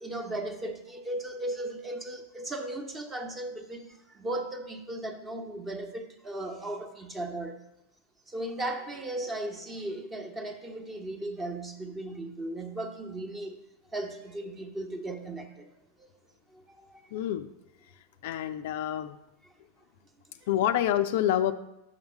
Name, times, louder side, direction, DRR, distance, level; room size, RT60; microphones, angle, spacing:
voice 1, 0.0-7.6 8.3-13.6 13.9-15.7 16.0-16.1 16.5-17.1, right 1 dB, 15° right, 1.0 m, -36 dB
voice 2, 17.1-17.5 18.2-19.2 20.5-21.5, left 11 dB, 50° left, 0.4 m, -27 dB
6.0 x 5.7 x 6.3 m
figure-of-eight pair, 90°, 0 cm